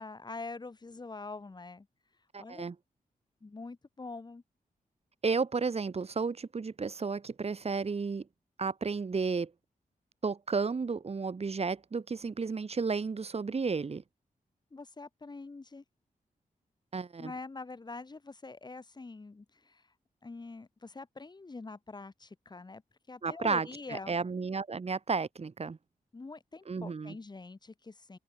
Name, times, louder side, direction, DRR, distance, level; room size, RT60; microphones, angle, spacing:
voice 1, 0.0-1.9 2.4-2.6 3.4-4.4 14.7-15.8 17.2-19.8 20.2-22.8 23.1-24.2 26.1-28.2, left 3 dB, 30° left, 2.7 m, -44 dB
voice 2, 2.3-2.8 5.2-8.3 8.6-9.5 10.2-14.0 16.9-17.3 23.2-25.8 26.7-27.2, right 4 dB, 45° right, 3.8 m, -32 dB
wide cardioid pair, 125°, 15 cm